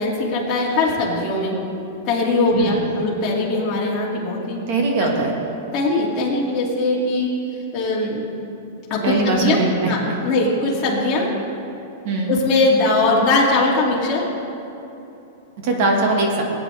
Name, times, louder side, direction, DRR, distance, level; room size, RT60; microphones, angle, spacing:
voice 1, 0.0-1.6 2.1-4.6 5.0-5.1 5.7-7.3 7.7-8.2 8.9-9.6 9.9-11.3 12.3-14.3, left 2 dB, 25° left, -5 dB, 2.3 m, -20 dB
voice 2, 2.5-3.0 4.7-5.3 9.0-10.1 12.0-12.4 15.6-16.4, right 2 dB, 45° right, 1 dB, 1.6 m, -21 dB
18.0 x 9.1 x 3.4 m, 2.9 s
supercardioid pair, 165°, 0 cm